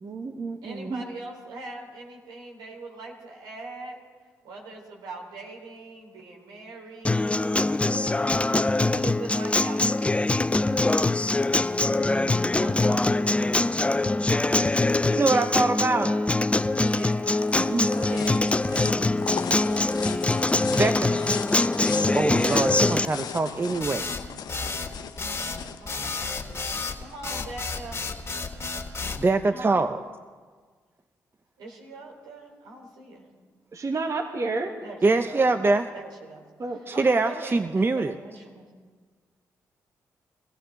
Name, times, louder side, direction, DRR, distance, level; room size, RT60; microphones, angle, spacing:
voice 1, 0.0-1.0 10.9-11.0 14.3-14.4 33.7-34.7 36.6-36.8, right 3 dB, 45° right, 4 dB, 1.6 m, -31 dB
voice 2, 0.6-4.0 4.4-7.3 8.9-10.1 12.5-13.3 16.7-19.1 25.5-26.3 27.0-28.0 29.5-29.9 31.6-33.3 34.8-35.5 35.9-38.7, right 3 dB, 80° right, 0 dB, 3.2 m, -42 dB
Acoustic guitar, 7.0-23.1, left 2 dB, 15° left, 0.6 m, -23 dB
voice 3, 15.1-16.1 17.6-17.9 20.7-21.2 22.1-24.1 29.2-30.0 35.0-35.9 36.9-38.1, right 3 dB, 30° right, 9 dB, 0.7 m, -24 dB
sound 1, 16.6-27.2, left 8 dB, 65° left, 0.8 m, -37 dB
sound 2, 23.8-29.2, left 4 dB, 40° left, 2.2 m, -32 dB
23.5 x 15.0 x 3.8 m, 1.5 s
hypercardioid pair, 45°, 7 cm